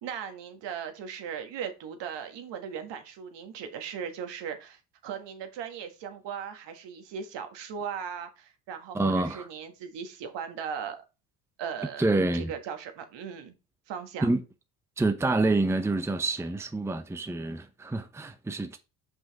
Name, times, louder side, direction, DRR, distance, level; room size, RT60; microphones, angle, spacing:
voice 1, 0.0-11.0 11.6-13.5 13.9-14.3, right 7 dB, 65° right, 1.6 m, -38 dB
voice 2, 8.9-9.5 12.0-12.5 14.2-14.4 15.0-18.8, right 2 dB, 5° right, 0.7 m, -27 dB
5.7 x 5.3 x 4.1 m
supercardioid pair, 85°, 46 cm